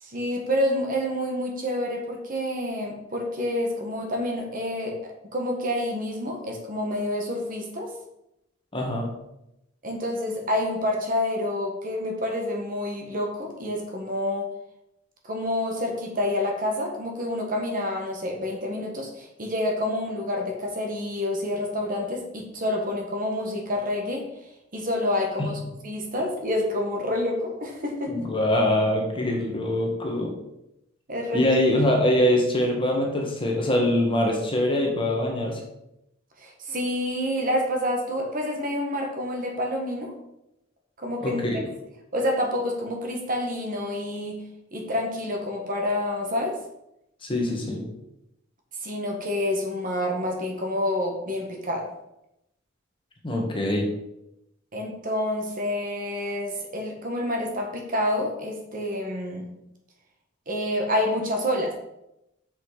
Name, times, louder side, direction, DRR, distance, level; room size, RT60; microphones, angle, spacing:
voice 1, 0.0-5.0 5.2-7.9 9.8-14.5 15.2-24.3 24.7-28.1 31.1-31.4 36.4-40.1 41.0-41.6 42.1-44.4 44.7-46.6 48.8-51.9 54.7-59.4 60.5-61.7, left 1 dB, 45° right, 1 dB, 1.5 m, -28 dB
voice 2, 8.7-9.1 25.4-25.5 28.1-30.3 31.3-35.6 41.2-41.6 47.3-47.8 53.2-53.9, left 1 dB, 25° left, 0 dB, 1.6 m, -23 dB
6.6 x 5.4 x 5.0 m, 0.85 s
head